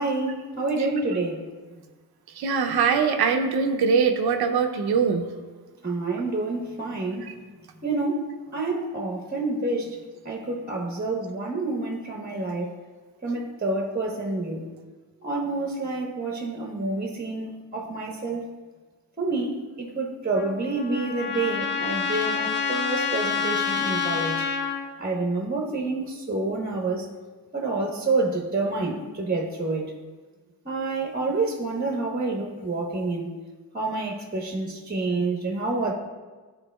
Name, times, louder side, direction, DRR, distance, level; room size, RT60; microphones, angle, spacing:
voice 1, 0.0-1.4 1.7-1.8 5.8-7.2 7.8-10.0 10.2-12.7 13.2-14.6 15.2-18.4 19.2-24.5 25.0-27.1 27.5-29.9 30.6-33.3 33.7-35.9, right 3 dB, 25° right, 0 dB, 1.1 m, -28 dB
voice 2, 2.4-5.3 7.2-7.3, right 6 dB, 75° right, 5 dB, 0.7 m, -22 dB
Trumpet, 20.3-24.9, left 6 dB, 30° left, 0.7 m, -27 dB
11.5 x 3.9 x 2.3 m, 1.4 s
cardioid pair, 75°, 38 cm